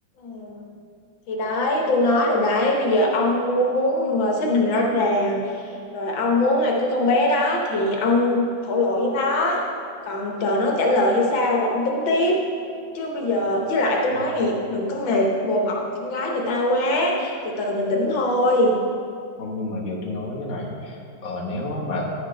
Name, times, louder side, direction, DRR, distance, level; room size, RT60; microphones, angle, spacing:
voice 1, 0.2-0.6 1.3-9.6 10.0-12.4 12.9-18.8, left 1 dB, 80° left, 0 dB, 1.8 m, -22 dB
voice 2, 19.4-22.1, left 2 dB, 45° left, -4 dB, 1.5 m, -30 dB
10.0 x 5.1 x 5.1 m, 2.3 s
omnidirectional pair, 2.1 m